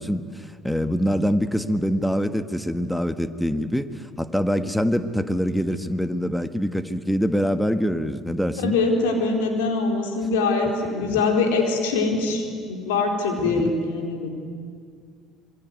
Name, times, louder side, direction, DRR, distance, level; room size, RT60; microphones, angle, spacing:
voice 1, 0.0-8.7 11.0-11.2 13.4-13.6, equal, ahead, 10 dB, 1.6 m, -24 dB
voice 2, 8.6-14.3, left 3 dB, 80° left, 3 dB, 4.1 m, -23 dB
26.5 x 22.5 x 9.4 m, 2.1 s
hypercardioid pair, 65°, 0 cm